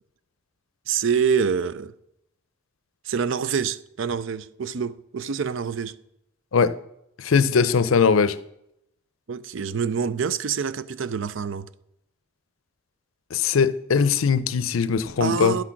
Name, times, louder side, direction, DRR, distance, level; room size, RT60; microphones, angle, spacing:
voice 1, 0.9-1.9 3.1-6.0 9.3-11.7 15.2-15.6, right 6 dB, 70° right, 0.5 m, -26 dB
voice 2, 7.2-8.4 13.3-15.6, left 6 dB, 80° left, 0.5 m, -20 dB
10.0 x 6.2 x 5.8 m
head